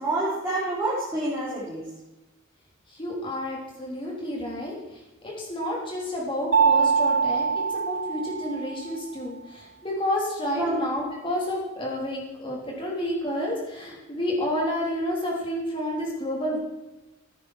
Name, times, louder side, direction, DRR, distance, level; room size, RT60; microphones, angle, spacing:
voice 1, 0.0-1.8 10.6-10.8, right 2 dB, 15° right, -9 dB, 3.8 m, -27 dB
voice 2, 3.0-4.7 5.2-16.6, left 1 dB, 25° left, -3 dB, 3.8 m, -30 dB
Mallet percussion, 6.5-9.0, right 6 dB, 90° right, 2.0 m, -23 dB
15.0 x 10.0 x 4.5 m, 1.1 s
head